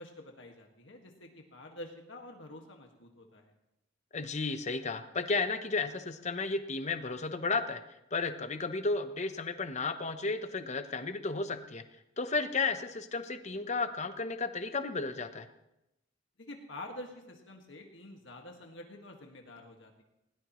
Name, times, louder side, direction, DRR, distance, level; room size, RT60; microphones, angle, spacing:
voice 1, 0.0-3.5 16.4-20.0, left 1 dB, 65° left, 2 dB, 1.8 m, -48 dB
voice 2, 4.1-7.8 8.1-11.8 12.2-15.5, left 4 dB, 35° left, 9 dB, 0.8 m, -33 dB
20.0 x 18.0 x 3.1 m, 0.88 s
head